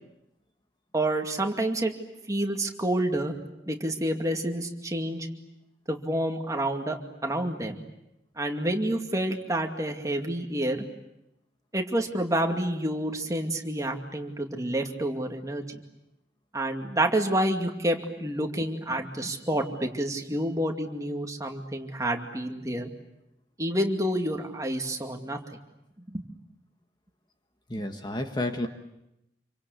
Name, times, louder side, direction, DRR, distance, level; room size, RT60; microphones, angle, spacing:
voice 1, 0.9-1.9 2.3-3.3 3.7-5.3 5.9-7.0 7.2-7.8 8.4-10.8 11.7-15.8 16.5-22.9 23.6-25.4 26.1-26.2, right 1 dB, 20° right, 3 dB, 2.3 m, -28 dB
voice 2, 27.7-28.7, left 1 dB, 25° left, 5 dB, 1.6 m, -30 dB
27.5 x 24.5 x 8.4 m, 0.88 s
head